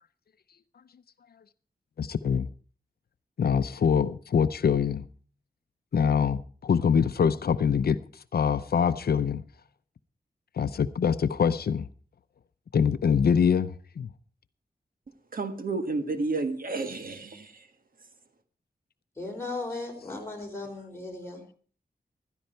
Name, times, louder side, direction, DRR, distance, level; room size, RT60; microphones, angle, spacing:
voice 1, 2.0-2.5 3.4-5.0 5.9-8.0 8.3-9.4 10.6-11.9 12.7-14.1, left 7 dB, 75° left, 0.6 m, -24 dB
voice 2, 15.3-17.6, right 3 dB, 60° right, 1.7 m, -31 dB
voice 3, 19.2-21.4, left 3 dB, 15° left, 4.8 m, -36 dB
16.0 x 13.0 x 4.5 m
wide cardioid pair, 125°, 16 cm